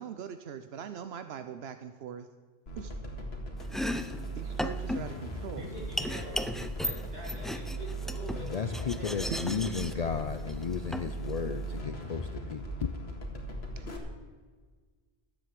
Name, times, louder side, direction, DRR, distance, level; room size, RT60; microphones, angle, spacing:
voice 1, 0.0-2.3 2.8-2.9 4.4-5.6 9.3-9.9 13.8-13.9, right 7 dB, 85° right, 10 dB, 0.9 m, -41 dB
sound 1, 2.7-14.0, right 1 dB, 85° left, 2.1 m, -39 dB
Domestic sounds home sounds, 3.6-11.8, equal, ahead, 0.3 m, -37 dB
voice 2, 5.5-10.2, equal, 45° right, -5 dB, 5.1 m, -46 dB
voice 3, 8.5-12.6, left 6 dB, 50° left, 9 dB, 0.5 m, -34 dB
13.5 x 8.0 x 7.6 m, 1.5 s
omnidirectional pair, 1.0 m